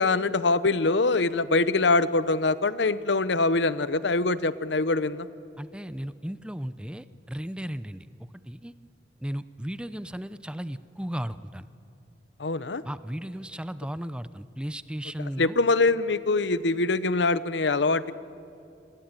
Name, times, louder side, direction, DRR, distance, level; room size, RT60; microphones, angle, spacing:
voice 1, 0.0-5.3 12.4-12.8 15.4-18.1, left 3 dB, 80° left, 16 dB, 0.9 m, -24 dB
voice 2, 5.6-8.7 9.2-11.6 12.8-15.6, equal, 5° right, 14 dB, 0.6 m, -35 dB
28.0 x 21.0 x 9.0 m, 2.7 s
head